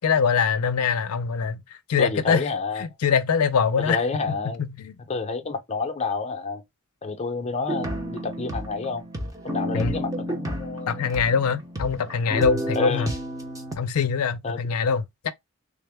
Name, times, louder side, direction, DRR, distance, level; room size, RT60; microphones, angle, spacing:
voice 1, 0.0-1.6 1.9-2.5 2.8-4.0 4.6-4.9 9.7-9.9 10.9-13.1 13.8-15.3, left 6 dB, 75° left, 0.4 m, -23 dB
voice 2, 2.0-2.9 3.8-4.7 5.0-6.6 7.0-9.0 9.4-11.2 12.7-13.1 14.4-14.6, left 4 dB, 30° left, 0.5 m, -29 dB
sound 1, 7.7-13.8, equal, 15° right, 0.6 m, -31 dB
3.5 x 2.1 x 3.3 m
head